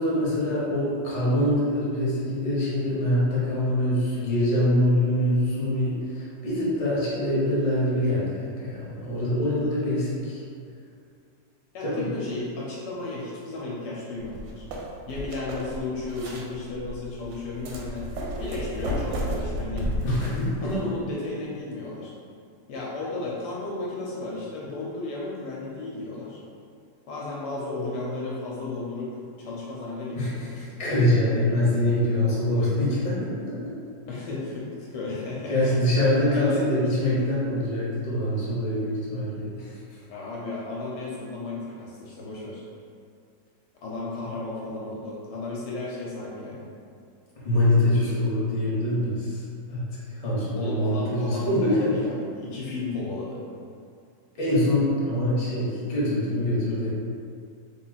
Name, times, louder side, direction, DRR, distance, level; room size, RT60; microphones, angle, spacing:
voice 1, 0.0-10.4 11.8-12.0 20.0-20.9 30.1-33.6 35.5-39.8 47.4-49.4 49.7-51.9 54.4-56.9, left 1 dB, 30° left, -8 dB, 0.9 m, -24 dB
voice 2, 11.7-14.7 15.0-18.1 18.4-19.9 20.6-22.1 22.7-26.4 27.1-30.6 34.1-35.9 36.3-36.7 40.1-42.6 43.8-46.7 47.9-48.4 50.5-53.4, left 2 dB, 75° left, -5 dB, 1.1 m, -34 dB
sound 1, 14.2-20.8, equal, 85° right, 1.3 m, -33 dB
3.5 x 2.2 x 4.0 m, 2.3 s
omnidirectional pair, 2.0 m